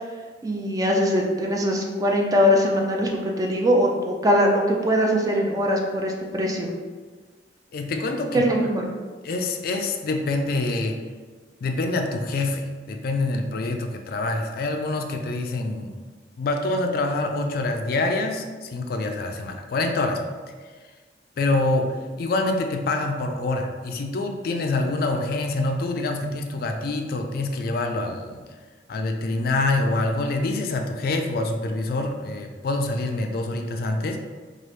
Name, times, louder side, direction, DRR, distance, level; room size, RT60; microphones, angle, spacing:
voice 1, 0.4-3.1 3.4-6.7 8.3-8.9, equal, 20° right, 1 dB, 0.3 m, -21 dB
voice 2, 7.7-8.5 9.2-11.0 11.6-16.0 16.4-20.3 21.4-28.4 28.9-34.2, left 2 dB, 55° left, 5 dB, 0.3 m, -26 dB
3.1 x 2.4 x 3.1 m, 1.4 s
head